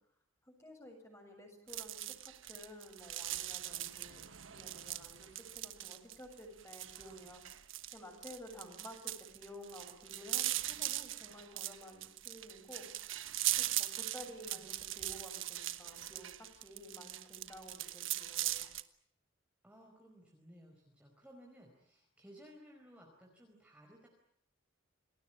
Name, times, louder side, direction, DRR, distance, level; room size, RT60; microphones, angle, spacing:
voice 1, 0.5-4.2 4.5-7.4 7.9-12.9 13.6-18.7, equal, 15° left, 3 dB, 7.5 m, -53 dB
sound 1, 1.7-18.8, right 14 dB, 70° right, 1.3 m, -40 dB
voice 2, 14.2-14.6 19.6-24.1, equal, 5° right, -1 dB, 4.7 m, -58 dB
28.5 x 20.0 x 9.1 m, 0.64 s
head